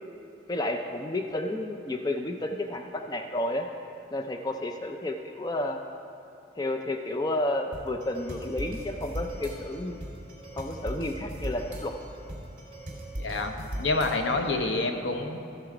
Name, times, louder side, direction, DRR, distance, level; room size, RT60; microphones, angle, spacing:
voice 1, 0.5-3.7 4.1-5.8 6.6-10.0 10.6-11.9, left 1 dB, 20° left, 5 dB, 0.4 m, -31 dB
sound 1, 7.7-14.6, right 1 dB, 40° right, 2.9 m, -39 dB
voice 2, 13.2-15.4, left 3 dB, 75° left, 5 dB, 0.9 m, -28 dB
14.5 x 6.9 x 4.9 m, 2.7 s
head